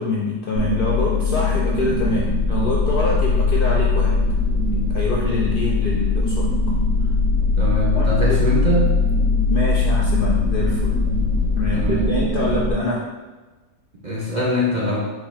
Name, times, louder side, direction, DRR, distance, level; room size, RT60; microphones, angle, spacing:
voice 1, 0.0-4.2 4.9-6.5 7.9-8.4 9.5-10.9 11.6-13.0, left 3 dB, 60° left, -4 dB, 0.5 m, -25 dB
sound 1, 0.6-12.7, left 3 dB, 70° right, 1.0 m, -20 dB
voice 2, 7.6-9.0 11.7-12.1 14.0-15.0, equal, 45° right, -5 dB, 0.6 m, -23 dB
4.9 x 2.3 x 4.2 m, 1.2 s
omnidirectional pair, 1.5 m